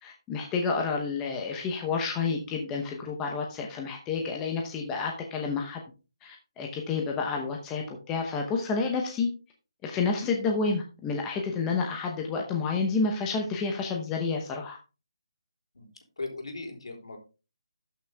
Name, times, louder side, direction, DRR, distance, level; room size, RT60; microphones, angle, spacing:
voice 1, 0.0-5.8 6.2-9.3 9.8-14.8, left 4 dB, 5° left, 1 dB, 0.8 m, -30 dB
voice 2, 16.2-17.2, left 3 dB, 75° left, 3 dB, 3.6 m, -38 dB
12.5 x 6.2 x 3.4 m, 0.32 s
hypercardioid pair, 180°, 3 cm